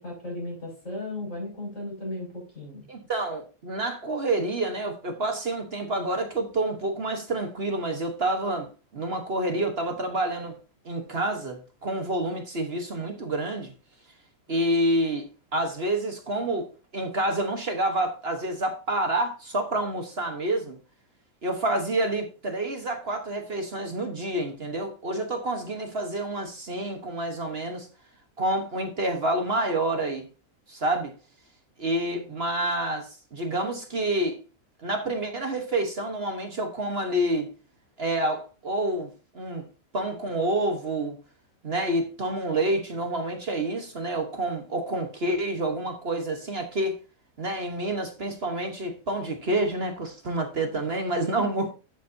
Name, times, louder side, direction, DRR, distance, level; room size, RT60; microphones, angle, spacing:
voice 1, 0.0-2.9 32.1-32.2 51.4-51.6, left 1 dB, 60° left, 7.0 m, -36 dB
voice 2, 2.9-8.7 8.9-10.6 10.8-13.7 14.5-15.2 15.5-20.8 21.4-27.9 28.4-30.3 30.7-31.1 31.8-34.4 34.8-37.5 38.0-39.6 39.9-41.2 41.6-47.0 47.4-51.7, right 1 dB, 45° right, 1.4 m, -28 dB
11.5 x 8.4 x 2.7 m
omnidirectional pair, 1.5 m